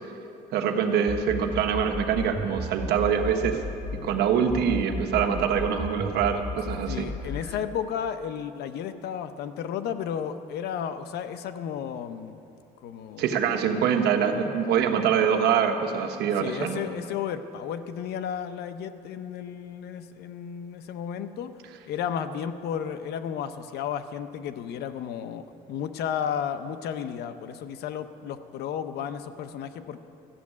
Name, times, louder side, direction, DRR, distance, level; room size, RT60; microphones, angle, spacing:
voice 1, 0.5-3.6 4.0-7.1 13.2-16.9, right 7 dB, 75° right, 4 dB, 1.2 m, -24 dB
sound 1, 1.1-4.1 4.5-7.5, left 3 dB, 5° right, 0.7 m, -34 dB
voice 2, 6.9-12.4 12.8-13.3 16.4-21.5 21.9-30.0, left 8 dB, 75° left, 11 dB, 0.7 m, -33 dB
14.0 x 7.2 x 9.6 m, 2.8 s
cardioid pair, 110°, 17 cm